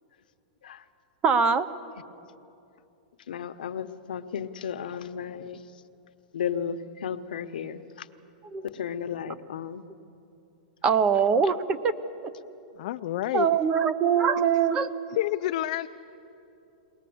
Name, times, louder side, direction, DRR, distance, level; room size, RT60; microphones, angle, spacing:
voice 1, 1.2-1.7 8.5-8.6 10.8-11.9 13.3-14.9, right 6 dB, 20° right, 15 dB, 0.7 m, -22 dB
voice 2, 3.3-5.6 6.3-7.8 8.7-9.8, left 8 dB, 85° left, 10 dB, 1.0 m, -34 dB
voice 3, 12.8-13.5 15.1-15.9, left 14 dB, 50° left, 8 dB, 0.5 m, -28 dB
21.5 x 19.0 x 7.8 m, 2.7 s
supercardioid pair, 160°, 5 cm